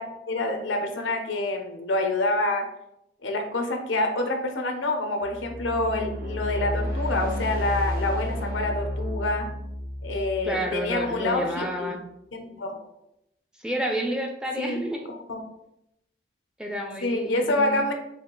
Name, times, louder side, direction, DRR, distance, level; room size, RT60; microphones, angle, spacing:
voice 1, 0.0-2.7 3.2-9.5 10.0-12.0 12.3-12.9 14.6-14.8 15.1-15.4 17.0-17.9, left 2 dB, 90° left, 5 dB, 0.7 m, -27 dB
sound 1, 5.2-11.4, equal, 45° right, 0.9 m, -32 dB
voice 2, 10.4-12.0 13.6-15.0 16.6-17.8, equal, 5° right, 2 dB, 0.4 m, -30 dB
4.2 x 2.4 x 3.8 m, 0.83 s
head